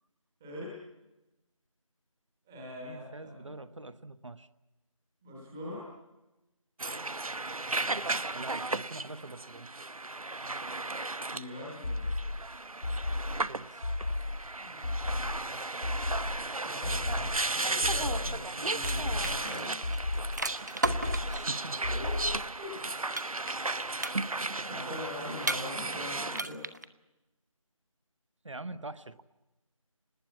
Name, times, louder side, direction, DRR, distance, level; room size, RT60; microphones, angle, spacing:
voice 1, 0.4-0.7 2.5-3.6 5.2-5.9 11.3-12.1 14.6-15.6 16.6-19.8 21.9-22.3 22.6-22.8 24.6-26.6, left 1 dB, 5° right, -4 dB, 1.1 m, -43 dB
voice 2, 2.8-4.5 8.3-9.7 13.5-13.9 16.9-17.5 21.0-22.1 28.4-29.2, right 2 dB, 60° right, 12 dB, 1.1 m, -44 dB
sound 1, 6.8-26.4, right 2 dB, 85° right, 1.0 m, -35 dB
sound 2, 11.8-12.5 12.8-13.5 13.8-14.5 14.8-15.5 15.8-16.5 16.8-17.5 17.8-18.5 18.8-19.5 19.8-20.5 20.8-21.5 21.8-22.5, left 2 dB, 40° left, 1.4 m, -33 dB
sound 3, 18.3-18.5 18.7-21.5 23.2-23.7 24.0-24.6 25.4-26.0 26.3-26.8, right 2 dB, 30° right, 0.8 m, -34 dB
28.5 x 20.0 x 8.5 m, 1.0 s
figure-of-eight pair, 170°, 18 cm